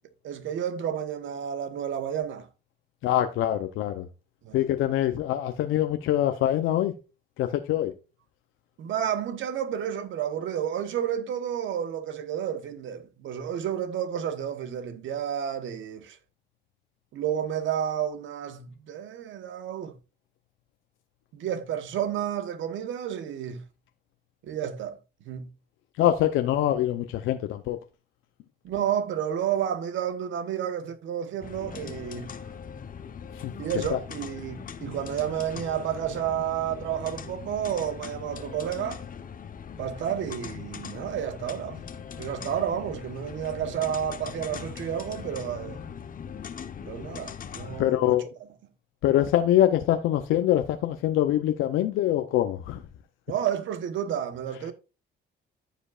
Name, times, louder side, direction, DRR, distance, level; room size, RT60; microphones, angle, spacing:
voice 1, 0.2-2.5 4.4-4.6 8.8-16.2 17.1-19.9 21.3-23.6 24.4-25.0 25.2-25.5 28.6-32.3 33.6-39.0 39.8-41.8 42.2-45.8 46.9-48.2 53.3-54.7, right 9 dB, 75° right, 1.1 m, -31 dB
voice 2, 3.0-4.1 4.5-6.9 7.4-7.9 26.0-27.8 33.4-33.5 33.9-34.0 47.8-48.3 49.0-52.8, left 12 dB, 90° left, 0.6 m, -24 dB
sound 1, 31.4-47.8, left 7 dB, 45° left, 0.9 m, -40 dB
14.0 x 5.1 x 2.4 m
cardioid pair, 90°, 20 cm